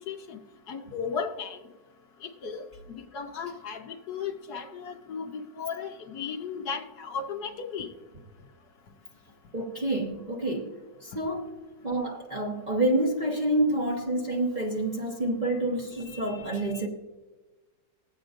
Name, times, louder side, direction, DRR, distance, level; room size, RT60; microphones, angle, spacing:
voice 1, 0.1-0.4 0.7-1.6 2.2-7.9, left 6 dB, 65° left, 1.3 m, -35 dB
voice 2, 9.5-10.7 11.0-11.5 11.8-16.9, right 1 dB, 30° right, 1.1 m, -28 dB
21.0 x 8.0 x 2.5 m
omnidirectional pair, 1.9 m